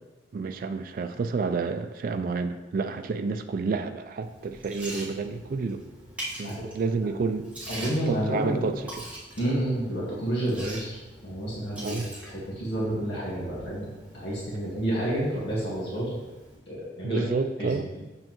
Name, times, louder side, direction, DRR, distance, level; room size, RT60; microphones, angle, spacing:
voice 1, 0.3-5.9 6.4-7.5 7.8-9.0 11.8-12.1 17.0-17.9, right 4 dB, 50° right, 7 dB, 0.3 m, -30 dB
Liquid, 4.2-16.6, right 1 dB, 10° right, 1.5 m, -43 dB
voice 2, 7.7-8.7 9.4-12.0 12.3-13.9 14.1-16.1 16.7-17.2 17.6-17.8, right 1 dB, 70° left, -6 dB, 1.7 m, -29 dB
7.6 x 6.2 x 3.0 m, 1.2 s
head